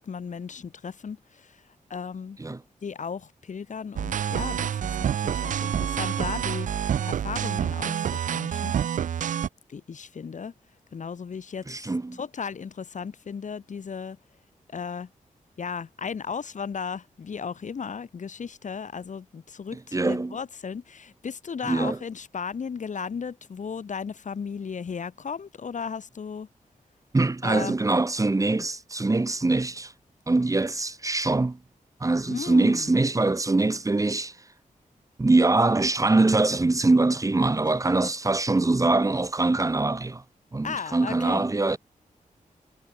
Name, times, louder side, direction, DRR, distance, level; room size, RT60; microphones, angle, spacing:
voice 1, 0.0-1.6 1.9-2.4 2.8-8.7 9.7-10.5 10.9-14.2 14.7-15.1 15.6-26.5 27.4-27.7 32.3-32.9 38.0-38.1 40.6-41.4, left 6 dB, 60° left, 8.0 m, -35 dB
sound 1, 4.0-9.5, right 9 dB, 65° right, 0.4 m, -27 dB
voice 2, 11.7-12.2 19.7-20.4 21.6-22.0 27.1-29.9 30.3-31.6 32.0-34.5 35.2-40.2 40.5-41.8, right 2 dB, 25° right, 3.5 m, -23 dB
wide cardioid pair, 130°, 14 cm